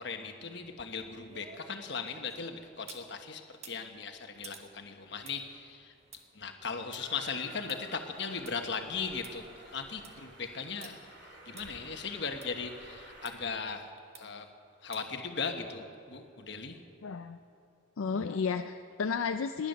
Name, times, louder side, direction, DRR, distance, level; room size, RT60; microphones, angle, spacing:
voice 1, 0.0-5.9 6.3-13.9 14.2-14.5 14.8-16.8, left 5 dB, 55° left, 5 dB, 1.2 m, -38 dB
sound 1, 0.6-3.1 3.5-8.5 8.9-9.0 9.2-9.3 9.8-10.2 10.8-10.9 11.6-11.7 12.4-12.5 13.2-13.3 14.1-14.5 14.9-15.2 15.6-15.7, right 6 dB, 30° right, 1.0 m, -53 dB
Train, 7.0-13.4, right 2 dB, 65° right, 2.9 m, -52 dB
voice 2, 17.0-17.4 18.0-19.7, left 5 dB, 80° left, 8 dB, 0.4 m, -32 dB
19.0 x 9.8 x 6.7 m, 2.7 s
head